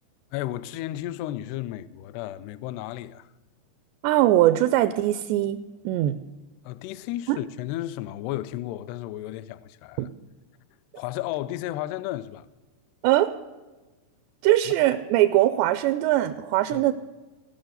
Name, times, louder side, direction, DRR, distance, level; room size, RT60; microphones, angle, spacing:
voice 1, 0.3-3.3 6.7-10.1 11.0-12.5 16.7-16.9, left 14 dB, 85° left, 2.4 m, -33 dB
voice 2, 4.0-6.2 7.3-7.4 10.0-10.1 13.0-13.3 14.4-16.9, right 14 dB, 85° right, 2.6 m, -21 dB
18.5 x 6.2 x 7.9 m
omnidirectional pair, 5.1 m